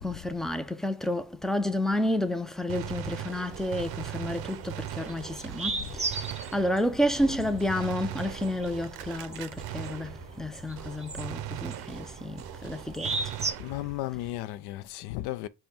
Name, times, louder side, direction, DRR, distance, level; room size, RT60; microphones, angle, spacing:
voice 1, 0.0-13.1, left 1 dB, ahead, 0.4 m, -30 dB
Gunshot gunfire, 2.7-10.5 10.8-14.1, right 13 dB, 75° right, 0.5 m, -40 dB
sound 1, 3.5-13.5, right 3 dB, 15° right, 0.8 m, -38 dB
voice 2, 7.2-7.6 13.6-15.5, left 15 dB, 80° left, 0.5 m, -36 dB
5.2 x 2.3 x 4.3 m
cardioid pair, 85°, 38 cm